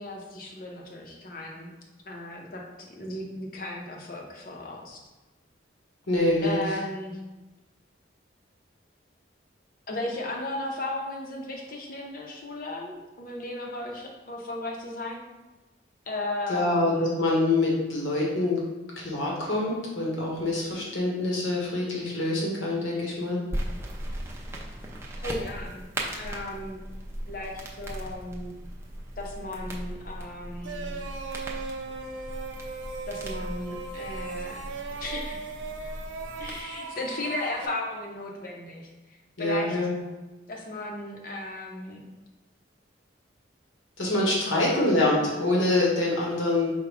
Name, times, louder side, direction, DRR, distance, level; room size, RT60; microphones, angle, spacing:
voice 1, 0.0-1.7 2.1-2.6 2.9-5.0 6.4-7.2 9.9-15.2 16.1-17.2 25.2-25.9 26.1-26.8 27.3-28.5 29.2-31.0 33.1-35.4 36.4-39.8 40.5-42.0 44.5-44.9, left 2 dB, 45° left, 0 dB, 0.7 m, -35 dB
voice 2, 6.1-6.8 16.5-18.6 19.0-23.4 39.4-39.9 44.0-46.7, left 2 dB, 90° left, -3 dB, 1.2 m, -25 dB
sound 1, 23.5-36.6, right 1 dB, 15° right, 0.5 m, -38 dB
sound 2, 30.6-37.7, right 4 dB, 75° right, 0.5 m, -38 dB
4.8 x 2.2 x 4.8 m, 1.1 s
head